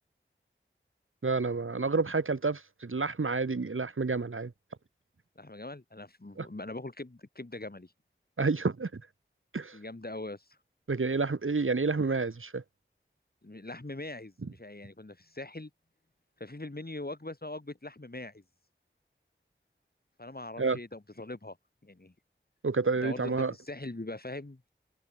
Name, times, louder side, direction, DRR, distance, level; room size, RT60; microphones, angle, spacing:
voice 1, 1.2-4.5 6.4-6.5 8.4-9.0 9.5-9.8 10.9-12.6 20.6-20.8 22.6-23.5, right 4 dB, 85° right, 1.7 m, -29 dB
voice 2, 5.4-7.9 9.7-10.6 13.4-15.7 16.4-18.4 20.2-21.6 21.8-22.1 23.0-24.6, left 2 dB, 50° left, 6.3 m, -41 dB
wide cardioid pair, 50°, 20 cm